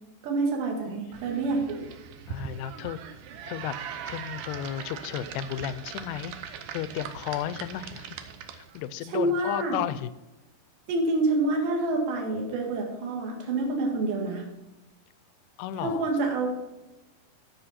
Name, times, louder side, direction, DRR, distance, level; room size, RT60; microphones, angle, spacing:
voice 1, 0.2-1.9 9.0-9.8 10.9-14.4 15.8-16.5, right 2 dB, 60° right, 0 dB, 3.2 m, -27 dB
sound 1, 1.1-8.8, right 7 dB, 80° right, 1.8 m, -40 dB
voice 2, 2.3-3.0 3.5-3.7 4.1-8.1 8.5-10.1 15.6-16.1, left 11 dB, 90° left, 14 dB, 2.6 m, -34 dB
13.5 x 6.3 x 4.2 m, 1.0 s
omnidirectional pair, 4.6 m